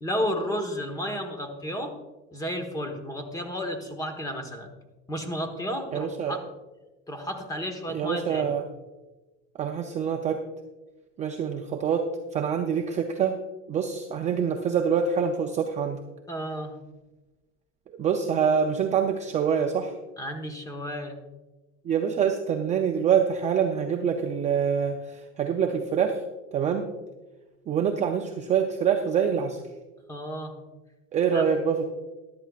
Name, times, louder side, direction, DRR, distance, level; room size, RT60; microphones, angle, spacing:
voice 1, 0.0-1.9 2.3-4.7 5.1-6.4 7.1-8.6 16.3-16.8 20.2-21.2 30.1-30.5 31.3-31.5, equal, 10° left, 5 dB, 1.2 m, -32 dB
voice 2, 5.9-6.4 7.9-8.6 9.6-10.4 11.2-13.4 13.7-16.0 18.0-19.9 21.9-26.2 26.5-26.9 27.7-29.6 31.1-31.8, right 7 dB, 20° right, 4 dB, 0.5 m, -25 dB
14.0 x 11.5 x 2.4 m, 1.1 s
supercardioid pair, 140°, 36 cm